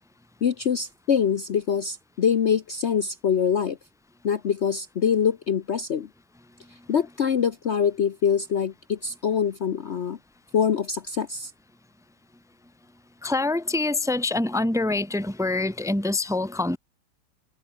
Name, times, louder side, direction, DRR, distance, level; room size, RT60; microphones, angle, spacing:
voice 1, 0.4-3.8 4.2-6.1 6.9-10.2 10.5-11.5, left 7 dB, 50° left, 1.0 m, -24 dB
voice 2, 13.2-16.8, left 2 dB, ahead, 1.1 m, -25 dB
omnidirectional pair, 1.8 m